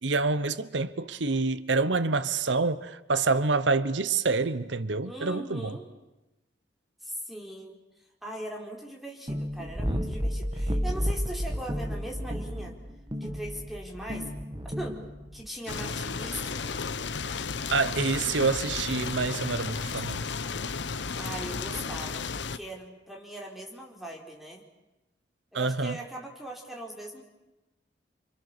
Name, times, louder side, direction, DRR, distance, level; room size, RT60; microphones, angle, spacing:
voice 1, 0.0-5.8 17.7-20.2 25.5-26.0, right 3 dB, 90° right, 1.0 m, -27 dB
voice 2, 5.0-5.9 7.0-7.8 8.2-12.7 13.2-14.3 14.6-15.0 15.3-16.8 21.2-24.6 25.5-27.2, right 1 dB, ahead, 4.1 m, -40 dB
sound 1, 9.3-15.5, equal, 25° right, 1.7 m, -32 dB
sound 2, 15.7-22.6, left 5 dB, 80° left, 1.0 m, -33 dB
30.0 x 25.5 x 6.9 m
head